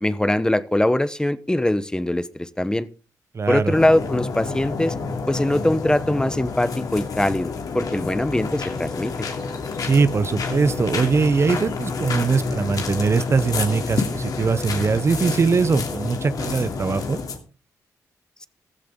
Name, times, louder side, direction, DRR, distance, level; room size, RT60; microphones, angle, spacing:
voice 1, 0.0-2.9 3.5-4.9 5.3-9.3, left 1 dB, 10° left, 15 dB, 1.0 m, -22 dB
voice 2, 3.3-3.7 9.8-17.2, right 5 dB, 40° right, 15 dB, 0.8 m, -21 dB
sound 1, 3.7-17.4, left 4 dB, 65° left, 3.0 m, -28 dB
15.5 x 13.5 x 3.8 m, 0.34 s
cardioid pair, 70°, 7 cm